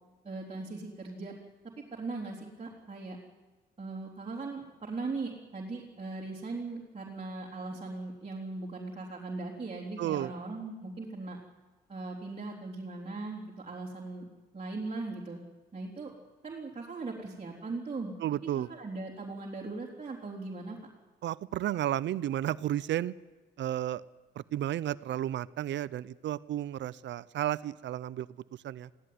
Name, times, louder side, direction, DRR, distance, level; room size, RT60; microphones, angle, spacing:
voice 1, 0.2-1.3 1.9-3.2 3.8-11.4 11.9-14.3 14.5-15.4 15.7-16.1 16.4-18.1 18.6-20.8, right 3 dB, 30° right, -5 dB, 3.6 m, -39 dB
voice 2, 10.0-10.3 18.2-18.7 21.2-23.1 23.6-24.0 24.5-28.3 28.6-28.9, right 12 dB, 65° right, 18 dB, 0.6 m, -32 dB
20.5 x 16.0 x 9.6 m, 1.2 s
cardioid pair, 90°, 20 cm